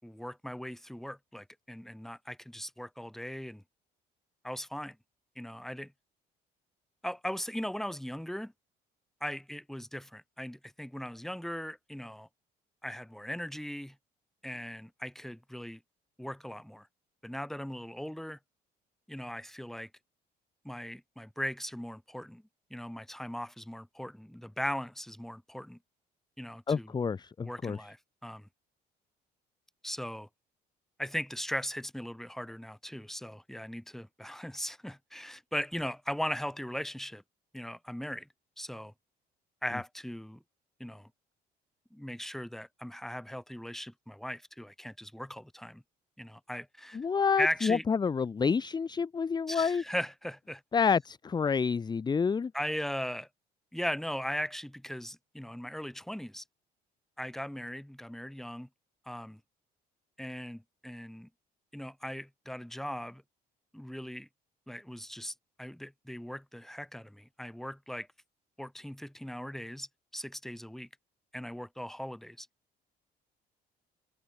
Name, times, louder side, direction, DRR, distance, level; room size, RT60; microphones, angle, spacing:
voice 1, 0.0-3.6 4.4-5.0 5.4-5.9 7.0-8.5 9.2-12.3 12.8-14.0 14.4-15.8 16.2-16.9 17.2-18.4 19.1-19.9 20.6-22.4 22.7-25.8 26.4-26.9 27.4-28.5 29.8-30.3 31.0-37.2 37.5-38.3 38.6-38.9 39.6-40.4 40.8-41.1 41.9-45.8 46.2-47.0 47.4-47.8 49.5-50.6 52.5-53.3 53.7-56.4 57.2-58.7 59.1-59.4 60.2-61.3 61.7-63.2 63.7-64.3 64.7-68.1 68.6-70.9 71.3-72.5, equal, ahead, 5.8 m, -38 dB
voice 2, 26.7-27.8 46.9-49.8 50.7-52.5, left 5 dB, 25° left, 0.9 m, -28 dB
cardioid pair, 110°, 17 cm